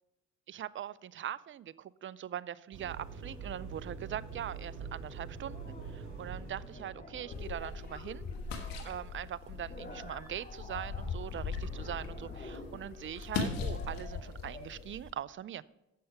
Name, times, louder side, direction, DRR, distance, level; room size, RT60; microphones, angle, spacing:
voice 1, 0.5-8.2 8.8-15.6, right 10 dB, 35° right, 20 dB, 0.4 m, -41 dB
sound 1, 2.7-7.2, right 5 dB, 60° right, 2.6 m, -44 dB
sound 2, 5.2-14.8, left 2 dB, 25° left, 2.0 m, -49 dB
sound 3, 7.3-15.1, left 5 dB, 80° left, 1.3 m, -40 dB
7.6 x 6.5 x 5.7 m, 0.95 s
supercardioid pair, 50°, 34 cm